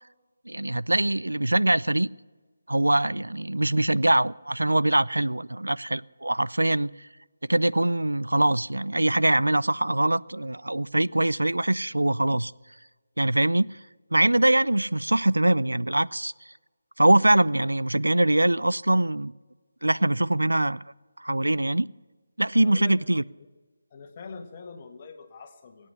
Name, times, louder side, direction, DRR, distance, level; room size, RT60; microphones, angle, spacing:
voice 1, 0.5-2.1 2.7-6.9 7.5-12.5 13.2-13.8 14.1-16.3 17.0-19.3 19.8-20.8 21.2-21.9 22.4-23.2, right 1 dB, 80° right, 19 dB, 0.4 m, -23 dB
voice 2, 22.5-23.0 23.9-25.9, left 4 dB, 30° left, 4 dB, 1.8 m, -43 dB
22.5 x 9.2 x 7.0 m, 1.3 s
figure-of-eight pair, 155°, 0 cm